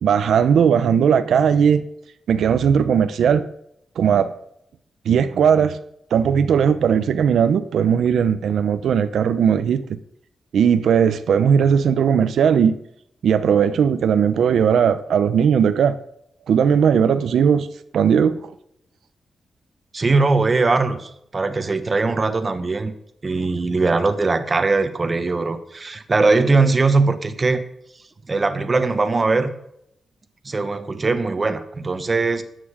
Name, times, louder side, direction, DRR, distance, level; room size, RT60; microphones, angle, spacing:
voice 1, 0.0-1.8 2.3-3.5 4.0-4.3 5.1-5.8 6.1-9.8 10.5-12.8 13.2-16.0 16.5-17.7 17.9-18.4, right 7 dB, 85° right, 11 dB, 0.7 m, -17 dB
voice 2, 19.9-22.9 23.2-27.6 28.3-29.5 30.4-32.4, right 3 dB, 30° right, 9 dB, 1.1 m, -20 dB
13.5 x 9.3 x 4.9 m, 0.76 s
wide cardioid pair, 140°, 0 cm